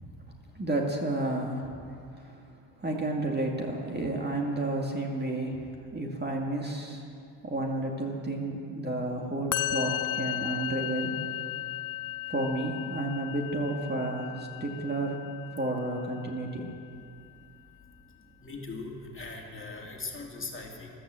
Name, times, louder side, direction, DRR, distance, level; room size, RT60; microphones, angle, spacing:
voice 1, 0.5-1.8 2.1-2.4 2.8-7.0 7.4-11.4 12.3-15.2 15.5-16.7, right 2 dB, 20° right, 1 dB, 2.2 m, -31 dB
Musical instrument, 9.5-16.8, left 13 dB, 45° left, 0.6 m, -36 dB
voice 2, 18.4-20.9, left 3 dB, 25° left, 0 dB, 2.5 m, -40 dB
14.0 x 12.5 x 7.7 m, 2.4 s
supercardioid pair, 90°, 47 cm